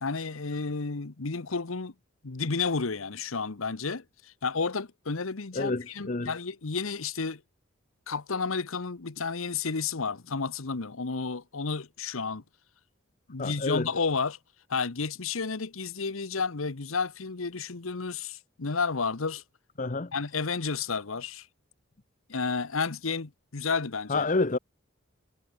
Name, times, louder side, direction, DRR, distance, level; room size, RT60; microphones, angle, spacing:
voice 1, 0.0-1.9 2.2-7.4 8.1-12.4 13.3-14.4 14.7-19.4 20.1-21.5 22.3-24.2, left 4 dB, 85° left, 1.1 m, -31 dB
voice 2, 5.5-6.3 13.4-13.9 19.8-20.1 24.1-24.6, left 3 dB, 40° left, 0.9 m, -28 dB
head